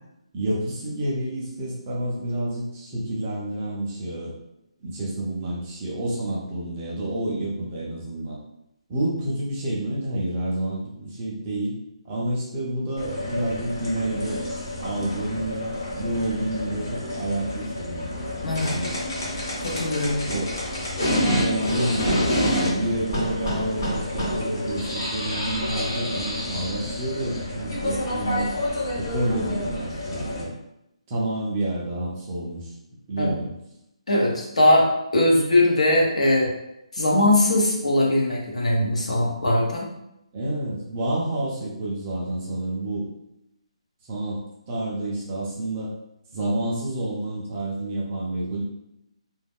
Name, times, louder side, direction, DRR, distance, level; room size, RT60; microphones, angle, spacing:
voice 1, 0.3-4.3 4.8-8.4 8.9-11.8 12.0-14.4 14.8-18.1 18.6-19.0 20.3-20.5 21.2-28.5 28.9-30.5 31.1-32.7 33.1-33.5 40.3-43.1 44.1-44.4 44.7-45.9 46.3-48.6, right 1 dB, 10° right, -5 dB, 0.3 m, -29 dB
sound 1, 13.0-30.4, left 1 dB, 30° left, 0.7 m, -28 dB
voice 2, 18.4-18.7 19.6-20.2 33.2-33.3 34.1-34.9 35.1-36.5 36.9-39.9, left 1 dB, 80° left, -2 dB, 0.9 m, -20 dB
2.3 x 2.1 x 3.4 m, 0.84 s
hypercardioid pair, 175°, 3 cm